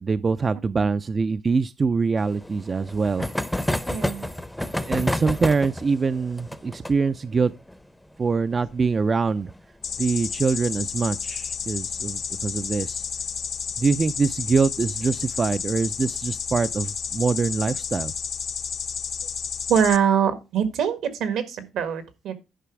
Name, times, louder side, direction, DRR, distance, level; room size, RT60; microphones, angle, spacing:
voice 1, 0.0-3.3 4.8-7.5 8.2-9.5 10.0-13.0 13.8-18.1, right 4 dB, 35° right, 0.4 m, -24 dB
sound 1, 2.2-11.4 11.6-11.7 12.0-12.1 12.4-12.5 13.9-14.1 14.8-15.2, left 1 dB, 5° left, 0.6 m, -31 dB
voice 2, 3.9-4.3 19.7-22.3, right 8 dB, 80° right, 1.6 m, -23 dB
sound 2, 9.8-20.0, left 6 dB, 55° left, 0.7 m, -31 dB
10.0 x 5.0 x 4.7 m
cardioid pair, 90°, 0 cm